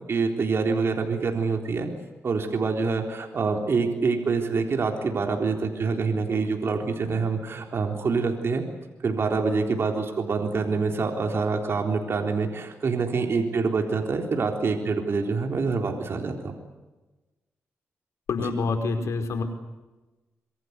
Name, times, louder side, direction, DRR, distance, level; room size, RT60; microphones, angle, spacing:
voice 1, 0.1-1.9 2.2-8.6 9.0-16.5 18.4-18.5, right 4 dB, 55° right, 3 dB, 3.8 m, -26 dB
voice 2, 18.3-19.4, left 4 dB, 80° left, 6 dB, 5.0 m, -26 dB
26.0 x 23.5 x 8.2 m, 1.1 s
cardioid pair, 75°, 5 cm